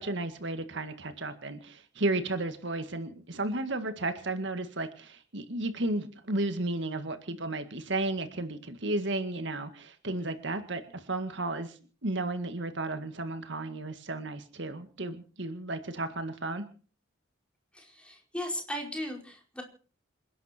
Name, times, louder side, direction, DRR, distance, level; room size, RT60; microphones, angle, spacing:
voice 1, 0.0-16.6, right 2 dB, 60° right, 9 dB, 1.9 m, -33 dB
voice 2, 17.7-19.6, equal, 5° left, 1 dB, 4.8 m, -37 dB
28.0 x 11.0 x 4.5 m, 0.40 s
head